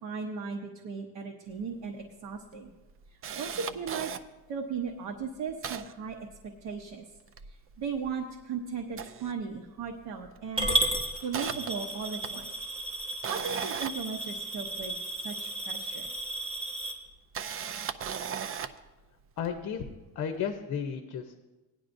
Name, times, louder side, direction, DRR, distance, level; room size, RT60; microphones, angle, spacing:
voice 1, 0.0-2.7 3.1-4.1 4.5-6.2 6.4-7.0 7.4-12.5 13.3-16.1, right 5 dB, 85° right, 1 dB, 1.0 m, -37 dB
Camera, 1.6-1.7 2.0-2.1 2.6-4.2 4.8-4.9 5.2-6.8 7.2-8.4 8.8-10.0 10.2-10.5 10.9-15.0 16.0-16.1 17.1-18.9 19.4-19.6, right 8 dB, 40° right, 0.4 m, -38 dB
Coin (dropping) / Glass, 10.6-16.9, right 1 dB, 15° right, 1.6 m, -33 dB
voice 2, 19.4-19.9 20.1-21.3, left 7 dB, 55° left, 6 dB, 0.8 m, -33 dB
17.5 x 10.5 x 2.6 m, 1.1 s
cardioid pair, 180°, 37 cm